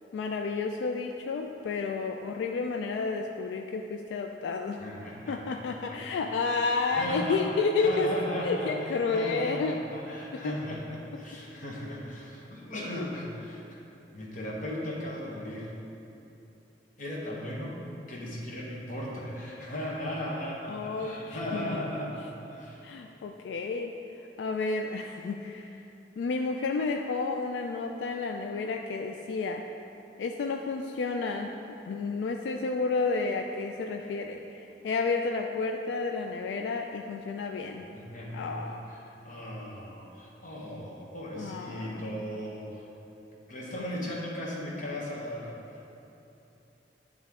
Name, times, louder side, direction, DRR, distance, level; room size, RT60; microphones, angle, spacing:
voice 1, 0.1-4.8 5.3-8.1 8.4-9.8 10.3-10.6 20.7-21.9 22.8-23.9 24.4-25.8 26.2-29.6 30.2-31.6 31.9-37.9 38.3-38.8 41.4-42.2 43.8-43.9, left 4 dB, 85° left, 3 dB, 0.3 m, -31 dB
voice 2, 4.8-6.2 6.6-13.8 14.1-15.7 17.0-17.8 18.1-23.0 37.9-39.0 39.2-42.8 43.5-45.5, left 1 dB, 50° left, -4 dB, 1.2 m, -37 dB
9.5 x 3.6 x 3.6 m, 2.9 s
head